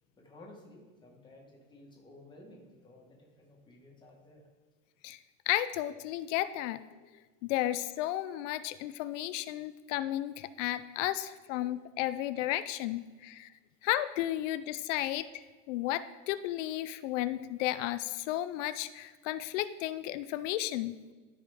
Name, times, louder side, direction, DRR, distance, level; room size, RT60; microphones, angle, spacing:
voice 1, 0.2-4.4, left 1 dB, 10° left, -1 dB, 1.5 m, -54 dB
voice 2, 5.5-6.8 7.4-13.5 13.8-21.0, left 14 dB, 85° left, 13 dB, 0.5 m, -33 dB
13.0 x 5.0 x 3.5 m, 1.3 s
supercardioid pair, 150°, 36 cm